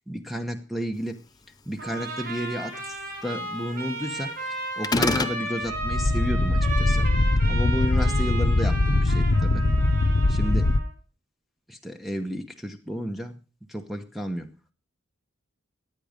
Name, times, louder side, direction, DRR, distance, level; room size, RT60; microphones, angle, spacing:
voice 1, 0.1-1.2 1.7-3.0 3.2-4.5 4.8-7.1 7.5-9.7 10.3-10.7 11.7-13.4 13.7-14.5, equal, ahead, 6 dB, 0.9 m, -32 dB
Trumpet, 1.8-10.9, right 2 dB, 45° right, 5.2 m, -34 dB
sound 1, 4.8-5.4, left 3 dB, 20° left, 0.6 m, -23 dB
sound 2, 5.6-10.8, left 2 dB, 55° left, 0.8 m, -22 dB
15.5 x 9.2 x 5.2 m, 0.34 s
head